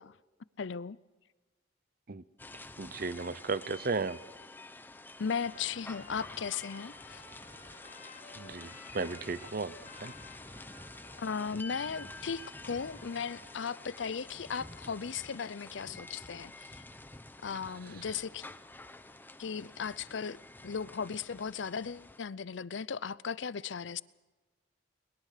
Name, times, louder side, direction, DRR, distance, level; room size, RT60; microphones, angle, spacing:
voice 1, 0.6-1.0 5.2-7.2 11.2-16.8 17.4-18.4 19.4-20.4 20.6-24.0, left 6 dB, 70° left, 19 dB, 0.6 m, -37 dB
sound 1, 2.4-22.2, left 2 dB, 10° left, 0.8 m, -49 dB
voice 2, 2.8-4.2 8.4-10.1 17.9-18.1, right 4 dB, 50° right, 17 dB, 0.7 m, -35 dB
Trumpet, 5.3-14.1, left 3 dB, 40° left, 4.6 m, -55 dB
21.5 x 21.0 x 6.6 m, 1.3 s
head